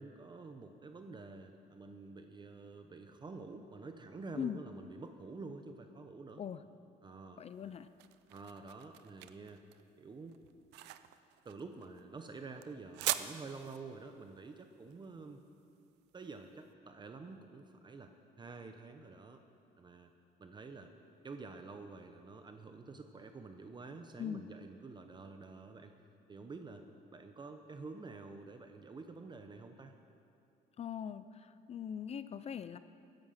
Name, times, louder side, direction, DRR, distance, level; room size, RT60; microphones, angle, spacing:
voice 1, 0.0-6.4 7.0-7.8 8.3-9.6 10.0-10.4 11.4-15.4 16.1-19.4 19.8-20.1 20.4-20.9 21.2-25.9 26.3-26.8 27.1-29.9, right 3 dB, 25° right, 6 dB, 0.8 m, -49 dB
voice 2, 7.4-7.9 24.2-24.5 30.8-32.8, left 8 dB, 40° left, 13 dB, 0.5 m, -41 dB
sound 1, 7.5-16.5, right 15 dB, 90° right, 0.6 m, -43 dB
16.5 x 10.5 x 5.8 m, 2.5 s
cardioid pair, 110°, 17 cm